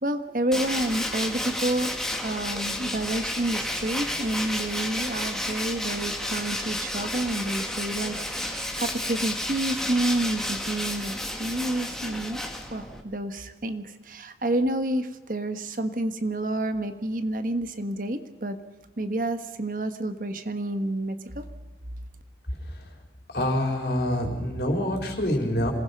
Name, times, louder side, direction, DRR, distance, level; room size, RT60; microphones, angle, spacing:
voice 1, 0.0-2.0 2.2-12.4 12.7-18.6 19.0-21.5, right 1 dB, 50° right, 8 dB, 1.4 m, -29 dB
Tools, 0.5-13.0, left 1 dB, 5° left, 2.0 m, -31 dB
voice 2, 23.3-25.7, left 1 dB, 65° left, 2 dB, 4.8 m, -26 dB
27.0 x 20.0 x 5.4 m, 1.2 s
head